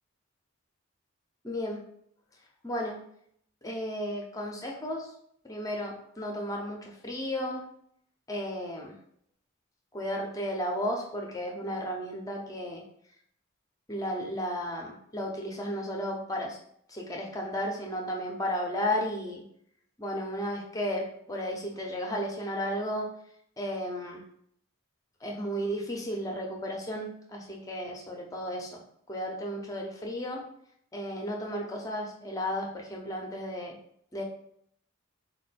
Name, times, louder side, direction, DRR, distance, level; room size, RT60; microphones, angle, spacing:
voice 1, 1.4-1.8 2.6-3.0 3.6-5.1 5.4-7.6 8.3-8.9 9.9-12.8 13.9-16.6 16.9-19.4 20.0-23.1 23.6-24.2 25.2-28.8 29.1-30.5 30.9-33.8 34.1-34.2, equal, 15° left, 0 dB, 0.6 m, -34 dB
4.3 x 2.2 x 4.1 m, 0.68 s
head